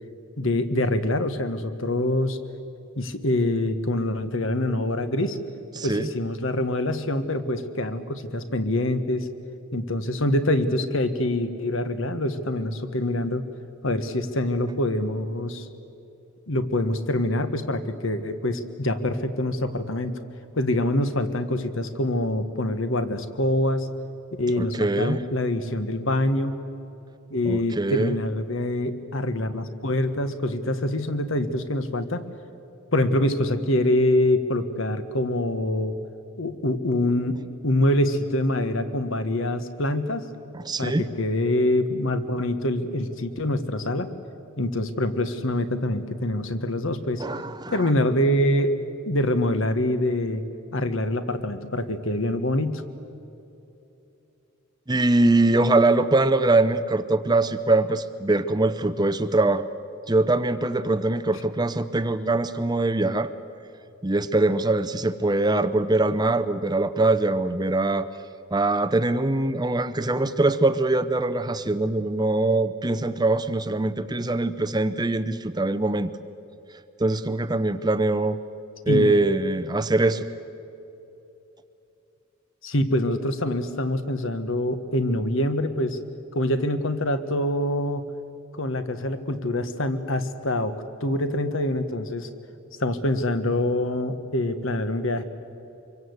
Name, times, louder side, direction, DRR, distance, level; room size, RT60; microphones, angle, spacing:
voice 1, 0.4-2.4 3.0-5.4 5.8-9.3 9.7-13.4 13.8-15.7 16.5-20.2 20.5-23.9 24.4-26.6 27.3-32.2 32.9-35.9 36.4-40.3 40.8-44.1 44.6-47.2 47.7-50.4 50.7-52.8 78.9-79.1 82.6-86.0 86.3-88.1 88.6-90.7 91.0-92.3 92.8-95.2, left 1 dB, 60° left, 10 dB, 1.5 m, -25 dB
voice 2, 5.8-6.1 24.5-25.2 27.4-28.1 40.5-41.1 47.2-47.9 54.9-59.7 60.1-63.3 64.0-68.1 68.5-76.1 77.0-78.4 78.9-80.2, right 2 dB, 20° right, 12 dB, 0.6 m, -23 dB
26.0 x 23.0 x 8.1 m, 2.9 s
head